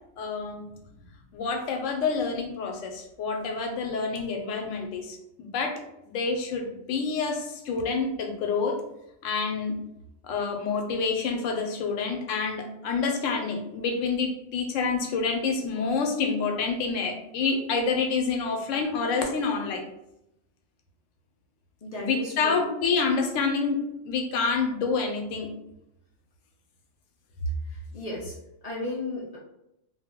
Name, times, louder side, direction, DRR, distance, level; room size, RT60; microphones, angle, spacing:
voice 1, 0.2-0.6 1.3-5.7 6.1-8.7 9.2-9.7 10.2-19.8 22.0-25.5, left 4 dB, 80° left, 3 dB, 0.9 m, -28 dB
voice 2, 21.8-22.5 27.7-28.3 28.6-29.4, left 2 dB, 65° left, -4 dB, 0.3 m, -35 dB
2.3 x 2.0 x 3.4 m, 0.83 s
omnidirectional pair, 1.3 m